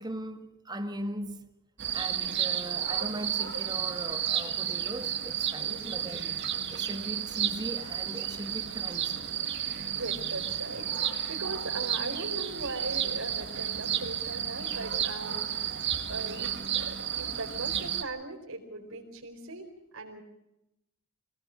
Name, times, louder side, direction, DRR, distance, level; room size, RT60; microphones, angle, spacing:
voice 1, 0.0-1.5 1.9-6.4 6.7-9.3, right 1 dB, 20° right, 1.7 m, -39 dB
sound 1, 1.8-18.0, right 9 dB, 55° right, 1.8 m, -32 dB
voice 2, 9.9-15.8 16.1-20.2, right 2 dB, 75° right, 4.6 m, -39 dB
26.0 x 18.0 x 6.4 m
head